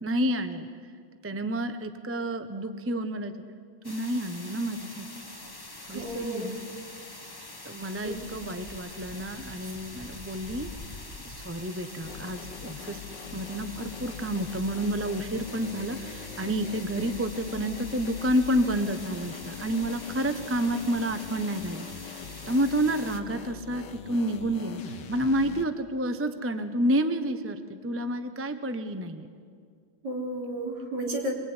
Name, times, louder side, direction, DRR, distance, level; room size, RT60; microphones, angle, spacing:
voice 1, 0.0-0.7 1.2-3.3 3.8-5.1 5.9-6.6 7.6-10.7 11.2-13.0 13.3-21.9 22.5-29.3, right 1 dB, 10° right, 9 dB, 0.7 m, -29 dB
sound 1, 3.8-23.2, left 2 dB, 15° left, 1.2 m, -44 dB
voice 2, 5.9-6.6 8.0-8.3 9.6-9.7 30.0-31.3, right 1 dB, 55° right, -1 dB, 4.4 m, -33 dB
sound 2, 12.0-25.6, left 7 dB, 65° left, 1.7 m, -43 dB
26.0 x 22.0 x 9.8 m, 2.2 s
omnidirectional pair, 2.2 m